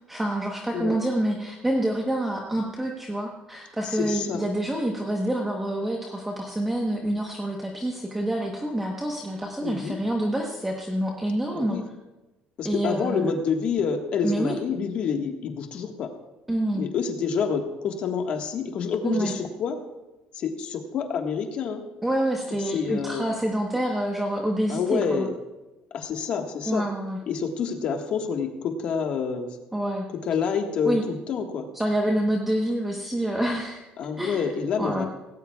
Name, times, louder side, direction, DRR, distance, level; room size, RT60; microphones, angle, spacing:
voice 1, 0.1-11.8 12.6-13.3 14.2-14.6 16.5-16.8 19.0-19.3 22.0-25.3 26.7-27.2 29.7-30.1 30.8-31.0 31.7-33.8 34.2-34.5 34.8-35.1, right 1 dB, 5° right, 0 dB, 1.0 m, -27 dB
voice 2, 3.8-4.4 9.6-10.0 11.5-11.8 12.6-16.1 16.7-19.8 20.3-21.8 22.7-23.2 24.7-25.3 25.9-26.8 27.3-29.6 30.2-31.7 34.0-35.1, left 6 dB, 45° left, 4 dB, 1.5 m, -28 dB
18.0 x 17.0 x 2.3 m, 1.1 s
cardioid pair, 175°, 3 cm